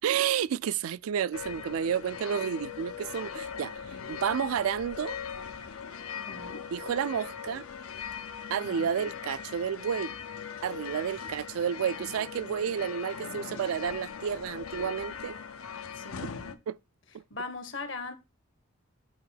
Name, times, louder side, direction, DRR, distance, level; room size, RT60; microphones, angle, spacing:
voice 1, 0.0-3.7 4.1-5.2 6.7-7.6 8.5-10.1 10.6-15.4 16.7-16.8, right 8 dB, 80° right, 0.3 m, -30 dB
sound 1, 1.3-16.5, left 7 dB, 85° left, 0.7 m, -40 dB
voice 2, 6.1-6.6 8.6-9.1 11.1-11.3 15.9-16.6 17.3-18.1, left 3 dB, 60° left, 1.1 m, -41 dB
8.7 x 3.0 x 5.6 m
head